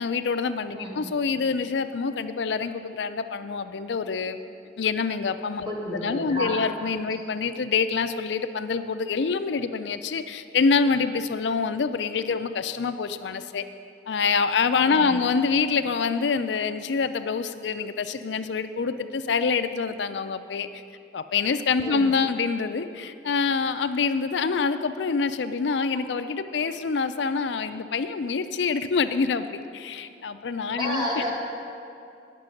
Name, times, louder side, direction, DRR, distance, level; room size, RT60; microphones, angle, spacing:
voice 1, 0.0-4.4 4.8-5.7 6.0-13.6 14.1-20.7 21.1-31.3, left 5 dB, 80° left, 10 dB, 0.5 m, -26 dB
voice 2, 0.7-1.1 5.6-6.6 14.8-15.2 21.8-22.1 30.8-31.3, equal, 25° right, -5 dB, 1.6 m, -31 dB
9.7 x 6.0 x 7.7 m, 2.5 s
head